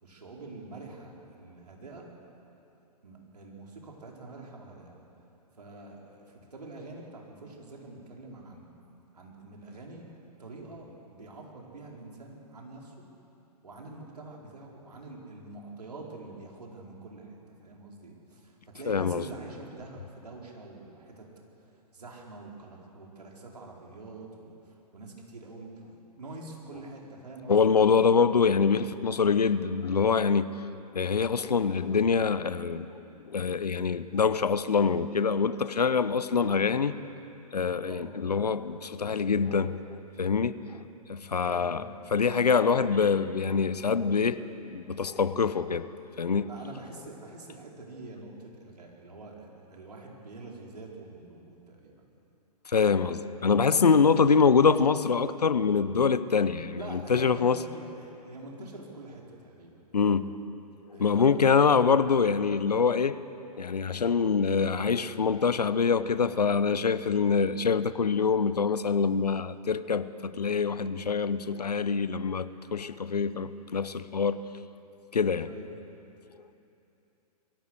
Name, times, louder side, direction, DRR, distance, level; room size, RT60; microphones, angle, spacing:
voice 1, 0.0-2.1 3.0-4.9 5.6-8.7 9.1-10.1 10.4-13.0 13.6-21.3 21.9-27.9 30.6-30.8 37.8-38.1 41.3-42.1 46.5-51.9 53.8-54.2 56.8-59.9 60.9-61.8 75.4-75.7, right 2 dB, 75° right, -1 dB, 4.5 m, -45 dB
voice 2, 18.9-19.2 27.5-30.6 30.9-32.9 33.2-36.9 37.5-40.6 41.1-41.8 42.1-45.9 46.2-46.6 52.7-57.6 59.9-60.4 61.0-63.2 63.6-74.5 75.1-75.5, left 5 dB, 80° left, 15 dB, 0.9 m, -25 dB
23.0 x 16.0 x 8.0 m, 2.9 s
figure-of-eight pair, 115°, 20 cm